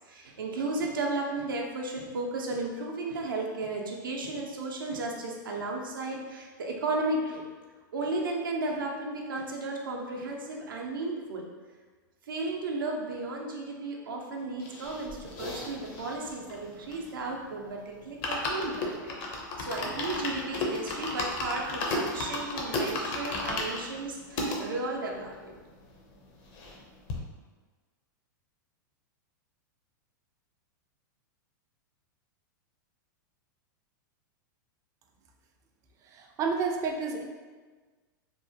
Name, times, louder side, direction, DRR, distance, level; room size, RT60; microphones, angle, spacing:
voice 1, 0.1-7.5 7.9-11.4 12.3-19.2 19.6-25.6, right 2 dB, 90° right, -1 dB, 0.5 m, -34 dB
sound 1, 14.6-17.4 17.7-17.8 18.1-24.6 25.2-25.3 25.4-25.5 25.8-26.8 27.1-27.2, left 2 dB, 45° left, 0.5 m, -34 dB
voice 2, 36.0-37.2, right 5 dB, 30° right, 3 dB, 0.4 m, -30 dB
2.8 x 2.1 x 2.7 m, 1.4 s
hypercardioid pair, 120°, 11 cm